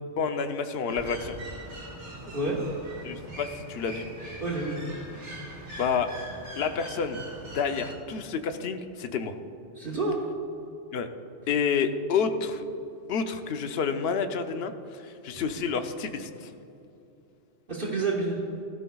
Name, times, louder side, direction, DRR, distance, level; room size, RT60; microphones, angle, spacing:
voice 1, 0.2-1.4 3.0-4.1 5.8-6.1 6.6-7.2 7.5-9.3 10.9-11.1 11.5-12.6 13.1-16.5, left 6 dB, 60° left, 8 dB, 0.9 m, -29 dB
sound 1, 0.9-8.0, right 1 dB, 80° right, 2.2 m, -42 dB
voice 2, 2.3-2.6 4.4-4.9 9.8-10.2 15.3-15.4 17.7-18.4, right 3 dB, 50° right, -3 dB, 1.6 m, -29 dB
16.0 x 14.0 x 2.3 m, 2.8 s
omnidirectional pair, 1.2 m